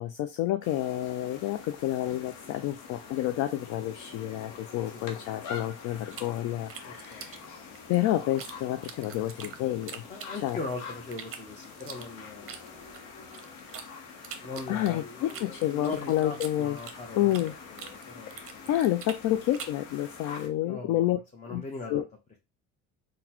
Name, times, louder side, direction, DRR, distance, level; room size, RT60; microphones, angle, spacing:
voice 1, 0.0-10.0 10.4-10.6 14.7-16.8 17.2-17.5 18.3-21.2 21.5-21.6 21.9-22.1, left 13 dB, 60° left, 8 dB, 0.4 m, -29 dB
sound 1, 0.6-20.5, left 5 dB, 85° left, 0.8 m, -46 dB
sound 2, 6.1-8.5 8.8-10.7 11.1-13.9 14.2-17.5 17.8-19.8, right 7 dB, 40° right, 0.6 m, -44 dB
voice 2, 6.8-7.2 10.1-13.2 14.4-18.8 20.6-22.0, left 3 dB, 20° left, 0 dB, 0.8 m, -40 dB
3.8 x 2.2 x 2.9 m, 0.25 s
supercardioid pair, 90°, 35 cm